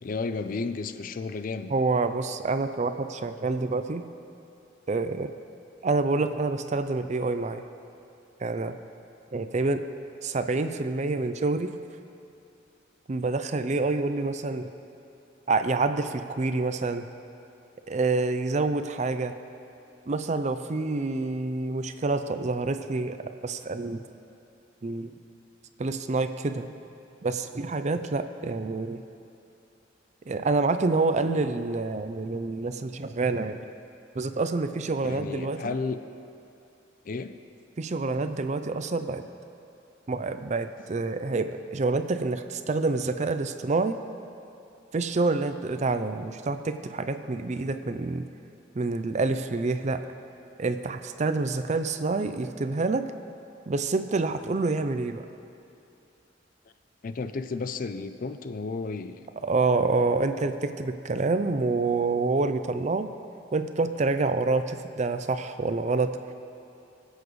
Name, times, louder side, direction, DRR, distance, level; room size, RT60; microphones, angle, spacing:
voice 1, 0.0-1.7 35.0-36.0 37.1-37.4 57.0-59.2, left 4 dB, 45° left, 10 dB, 0.4 m, -32 dB
voice 2, 1.7-4.1 4.9-5.3 5.8-7.6 8.4-8.8 9.3-9.9 10.2-11.7 13.1-14.7 15.5-17.1 17.9-19.3 20.1-23.2 23.4-24.0 24.8-25.1 25.8-26.7 27.2-29.0 30.3-33.6 34.1-35.8 37.8-39.2 40.1-44.0 44.9-48.3 48.7-50.1 50.6-53.1 53.7-55.3 59.4-63.1 63.5-66.3, right 3 dB, 40° right, 9 dB, 0.5 m, -27 dB
22.5 x 8.2 x 3.2 m, 2.8 s
head